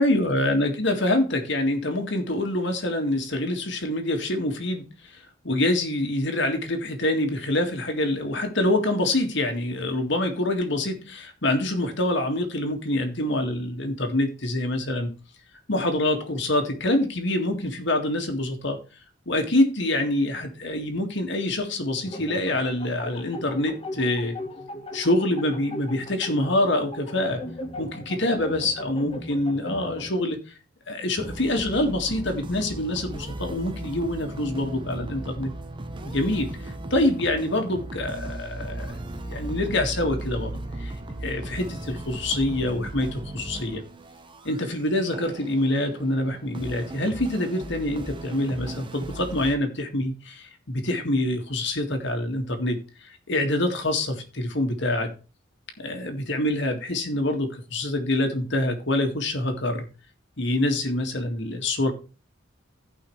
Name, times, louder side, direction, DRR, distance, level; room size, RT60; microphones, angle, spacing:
voice 1, 0.0-15.1 15.7-18.8 19.3-24.4 24.9-27.4 27.8-30.4 30.9-35.5 36.1-36.5 36.9-39.0 39.3-41.0 41.2-43.8 44.4-55.1 55.8-59.9 60.4-61.9, left 1 dB, 60° left, 2.0 m, -26 dB
sound 1, 22.0-30.2, left 1 dB, 25° left, 1.4 m, -38 dB
sound 2, 31.2-49.5, right 1 dB, 25° right, 1.0 m, -37 dB
16.5 x 5.5 x 3.2 m
head